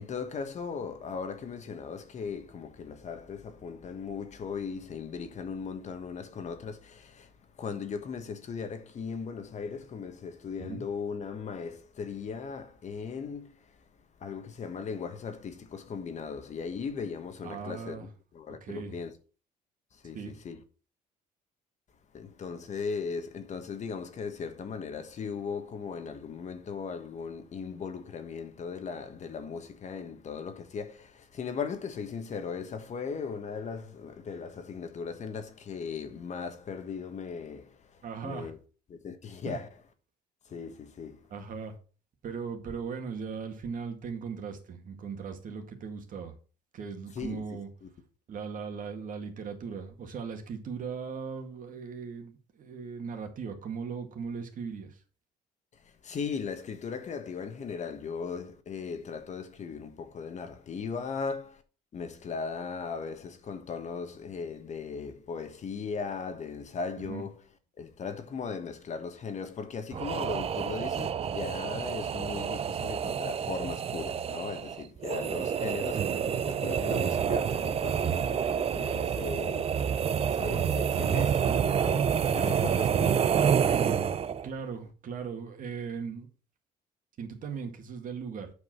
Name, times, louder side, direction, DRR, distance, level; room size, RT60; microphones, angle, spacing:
voice 1, 0.0-13.8 14.2-18.1 18.3-19.1 19.9-20.6 22.1-38.6 38.9-39.7 40.4-41.3 47.1-47.4 47.8-47.9 55.7-61.6 61.9-67.4 67.8-76.1 76.3-84.5, left 5 dB, 45° left, 1.4 m, -38 dB
voice 2, 17.4-18.1 18.6-18.9 20.1-20.3 38.0-38.5 39.5-39.6 41.3-41.7 42.2-46.3 46.7-47.7 48.3-55.0 67.0-67.2 75.9-76.2 84.4-86.3 87.2-88.5, right 5 dB, 50° right, 2.0 m, -38 dB
sound 1, 69.9-84.5, right 8 dB, 35° right, 0.5 m, -28 dB
8.2 x 5.2 x 6.1 m
cardioid pair, 110°, 17 cm